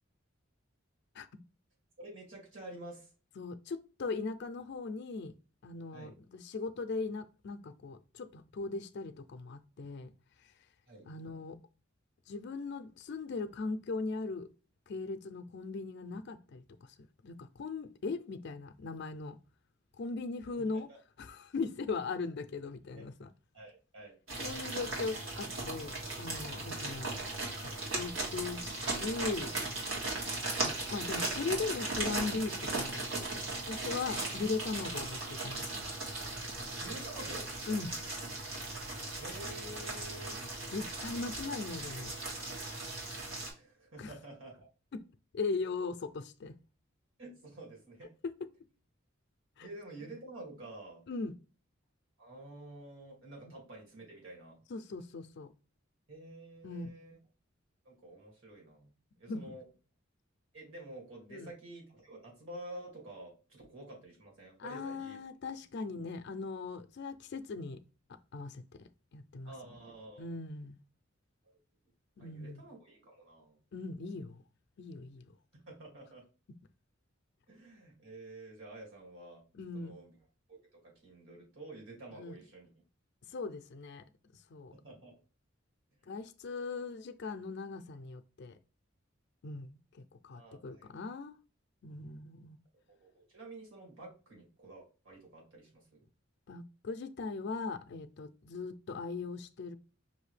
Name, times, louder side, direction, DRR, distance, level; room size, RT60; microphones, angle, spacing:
voice 1, 2.0-3.1 5.9-6.1 10.9-11.1 20.6-21.0 23.0-23.1 23.5-24.2 35.3-35.4 36.8-37.5 39.2-40.4 43.6-44.6 47.2-48.1 49.6-51.0 52.2-54.6 56.1-57.2 57.8-58.9 59.2-59.7 60.5-65.2 69.5-70.3 72.2-73.6 75.5-76.2 77.5-79.4 79.7-80.1 80.5-82.7 84.7-85.2 90.3-90.9 92.9-96.0, right 1 dB, 70° right, 2.2 m, -49 dB
voice 2, 3.4-5.3 5.6-10.1 11.1-11.6 12.3-14.5 14.9-16.9 17.2-19.4 20.0-20.9 21.2-23.3 24.4-27.1 27.6-29.5 30.6-33.0 33.7-35.9 37.7-38.0 40.7-42.1 44.0-44.1 44.9-45.0 45.3-46.5 49.6-49.7 51.1-51.3 53.4-53.5 54.7-55.5 56.6-56.9 59.3-59.5 61.3-61.5 64.6-67.8 68.3-68.6 69.1-69.5 70.2-70.8 72.2-72.6 73.7-74.4 74.8-75.3 79.5-79.9 82.2-82.4 83.3-84.0 84.5-84.7 86.1-88.6 89.4-91.4 91.8-92.6 96.5-99.7, left 4 dB, 60° left, 0.4 m, -39 dB
sound 1, 24.3-43.5, right 2 dB, 90° right, 1.8 m, -38 dB
5.5 x 2.6 x 3.2 m
head